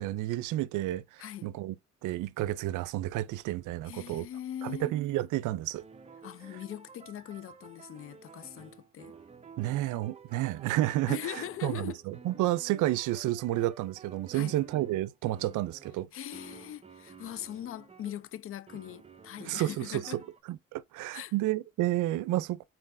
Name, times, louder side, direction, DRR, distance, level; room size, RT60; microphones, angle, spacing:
voice 1, 0.0-1.8 2.0-4.3 4.6-5.8 9.6-16.1 19.4-20.2 20.5-22.6, right 15 dB, 85° right, 0.5 m, -31 dB
voice 2, 3.8-4.9 6.2-9.1 11.1-12.0 14.3-14.5 16.1-20.2 21.1-21.3, left 11 dB, 45° left, 0.4 m, -41 dB
sound 1, 5.1-18.3 18.7-20.4, right 5 dB, 20° right, 0.6 m, -52 dB
4.5 x 3.7 x 2.6 m
cardioid pair, 90°, 30 cm